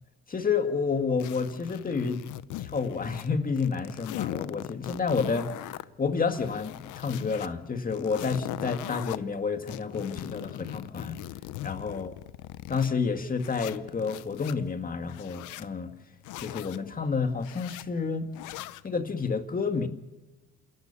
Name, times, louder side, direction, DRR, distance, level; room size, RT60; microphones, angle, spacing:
voice 1, 0.3-2.3 2.6-5.5 6.0-11.2 11.6-12.1 12.7-15.9 16.4-18.3 18.8-19.9, left 5 dB, 30° left, 7 dB, 2.0 m, -29 dB
sound 1, 1.2-3.3 3.6-5.8 6.3-7.5 7.9-9.2 9.7-12.9 13.4-14.6 15.1-15.7 16.2-16.8 17.4-17.9 18.3-18.9, left 15 dB, 80° left, 0.8 m, -40 dB
28.5 x 14.0 x 7.0 m, 1.2 s
cardioid pair, 100°, 30 cm